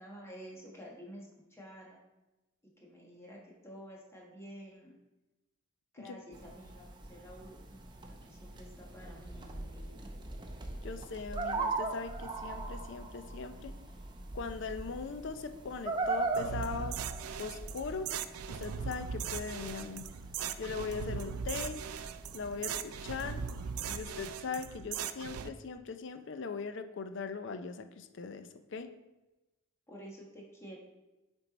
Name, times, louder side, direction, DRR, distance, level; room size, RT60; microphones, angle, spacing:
voice 1, 0.0-2.0 2.8-5.0 5.9-10.1 29.9-30.8, equal, 10° left, -3 dB, 1.2 m, -50 dB
sound 1, 6.3-24.0, right 3 dB, 20° right, 0.6 m, -41 dB
voice 2, 10.8-13.7 14.3-17.0 17.4-18.1 18.5-20.1 20.6-21.8 22.3-23.4 23.9-28.9, left 4 dB, 55° left, 9 dB, 0.4 m, -40 dB
sound 2, 16.3-25.5, right 7 dB, 90° right, 0.4 m, -39 dB
6.8 x 4.5 x 4.0 m, 1.0 s
head